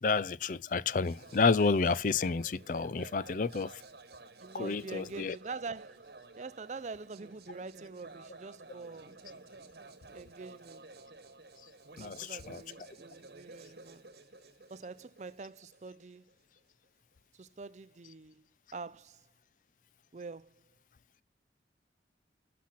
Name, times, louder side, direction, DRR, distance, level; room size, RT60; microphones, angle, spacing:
voice 1, 0.0-3.8 4.5-5.4 12.0-12.6, left 4 dB, 45° left, 0.4 m, -30 dB
sound 1, 1.0-16.9, right 3 dB, 60° right, 1.3 m, -53 dB
voice 2, 4.4-6.1 6.3-9.2 10.1-10.8 12.0-14.1 14.7-16.3 17.3-18.4 18.7-19.2 20.1-20.6, right 4 dB, 40° right, 0.5 m, -45 dB
12.0 x 6.0 x 5.7 m
head